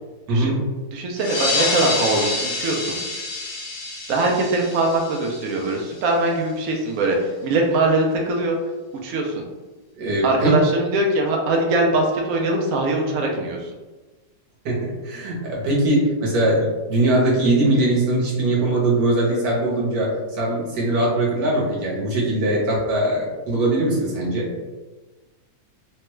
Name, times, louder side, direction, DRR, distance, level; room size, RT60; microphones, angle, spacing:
voice 1, 0.3-0.6 10.0-10.5 14.6-24.5, right 1 dB, 60° right, -4 dB, 1.4 m, -21 dB
voice 2, 0.9-3.0 4.1-8.6 9.0-9.4 10.2-13.7, right 2 dB, 80° right, 0 dB, 0.7 m, -22 dB
sound 1, 1.2-6.2, left 2 dB, 70° left, 0.7 m, -27 dB
3.2 x 2.2 x 3.0 m, 1.2 s
omnidirectional pair, 2.0 m